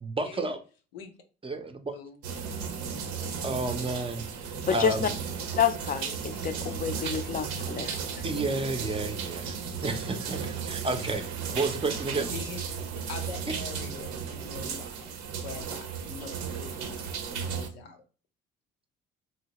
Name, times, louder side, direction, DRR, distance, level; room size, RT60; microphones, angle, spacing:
voice 1, 0.0-0.6 1.4-1.9 3.4-5.1 8.2-11.2 11.5-12.3, right 3 dB, 20° right, 0.5 m, -31 dB
sound 1, 2.2-17.7, right 6 dB, 70° right, 0.6 m, -35 dB
voice 2, 4.7-5.1 5.6-8.0, left 8 dB, 30° left, 0.4 m, -28 dB
voice 3, 12.3-18.0, left 5 dB, 90° left, 0.5 m, -44 dB
2.9 x 2.7 x 2.9 m
hypercardioid pair, 50°, 29 cm